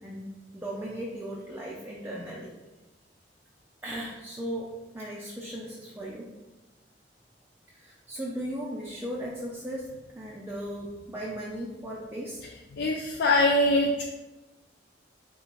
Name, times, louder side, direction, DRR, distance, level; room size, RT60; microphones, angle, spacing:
voice 1, 0.0-2.5 3.8-4.7 4.9-6.3 7.7-9.9 10.1-12.4, equal, 10° right, -5 dB, 0.5 m, -37 dB
voice 2, 12.7-14.0, left 1 dB, 65° left, -1 dB, 0.4 m, -23 dB
3.9 x 3.3 x 3.0 m, 1.1 s
head